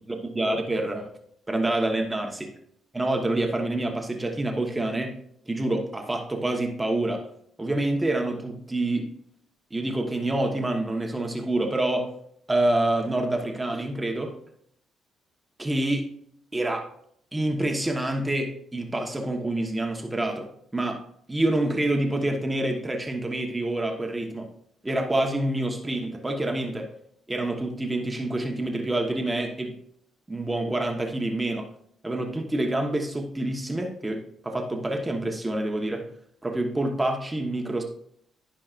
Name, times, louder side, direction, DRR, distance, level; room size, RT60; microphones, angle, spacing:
voice 1, 0.3-1.1 1.5-2.3 2.9-5.1 5.5-7.2 7.6-9.1 9.7-12.1 12.5-14.3 15.6-16.1 16.5-16.9 17.3-21.0 21.3-24.5 24.8-26.9 27.3-29.7 30.3-31.7 32.0-36.0 36.4-37.8, right 1 dB, 15° right, 3 dB, 1.3 m, -27 dB
15.0 x 5.2 x 2.6 m, 0.67 s
cardioid pair, 90°, 0 cm